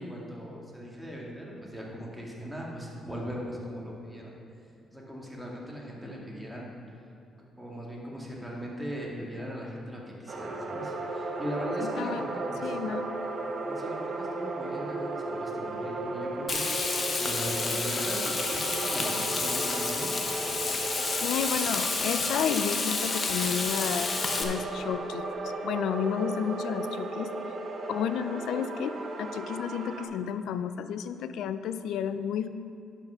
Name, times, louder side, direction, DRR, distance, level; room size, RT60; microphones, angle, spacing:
voice 1, 0.0-4.3 4.9-6.7 7.6-12.8 13.4-20.1, equal, ahead, -3 dB, 2.1 m, -39 dB
sound 1, 10.3-30.0, right 2 dB, 55° right, 1.1 m, -35 dB
voice 2, 11.8-12.3 12.6-13.1 21.2-27.4 27.9-32.5, left 8 dB, 80° left, 11 dB, 0.4 m, -32 dB
Frying (food), 16.5-24.4, left 3 dB, 40° left, 1.0 m, -30 dB
10.5 x 5.8 x 5.7 m, 2.6 s
cardioid pair, 90°, 0 cm